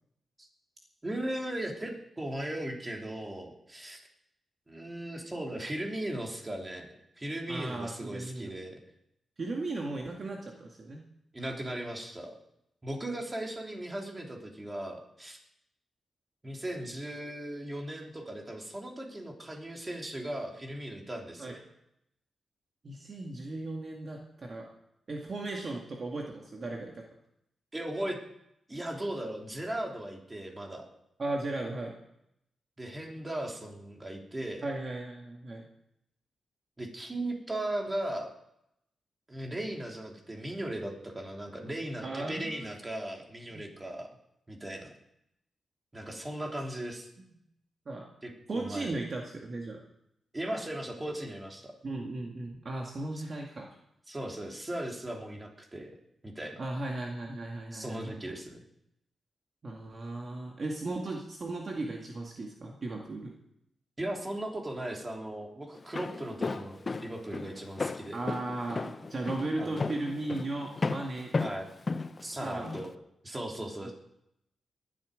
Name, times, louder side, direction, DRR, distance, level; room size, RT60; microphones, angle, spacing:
voice 1, 1.0-4.0 4.7-8.8 11.3-12.4 12.8-15.4 16.4-21.6 27.7-28.2 28.7-30.9 32.8-34.7 36.8-38.3 39.3-44.1 44.5-44.9 45.9-47.1 48.2-49.0 50.3-51.7 54.1-55.9 56.2-56.6 57.7-58.6 64.0-68.2 69.6-69.8 71.4-71.7 72.2-72.9 73.2-73.9, right 1 dB, 20° right, 1 dB, 3.3 m, -37 dB
voice 2, 7.5-8.5 9.4-11.1 21.4-21.6 22.8-24.7 25.1-27.0 31.2-32.0 34.6-35.7 42.0-42.7 43.5-43.6 47.9-48.1 48.5-49.8 51.8-53.7 56.6-58.2 59.6-63.4 68.1-71.4 72.4-72.8 73.8-73.9, right 2 dB, 40° right, 0 dB, 2.1 m, -36 dB
Walk footsteps, 65.7-72.9, left 3 dB, 35° left, 0.7 m, -34 dB
20.0 x 12.0 x 5.2 m, 0.78 s
cardioid pair, 105°, 0 cm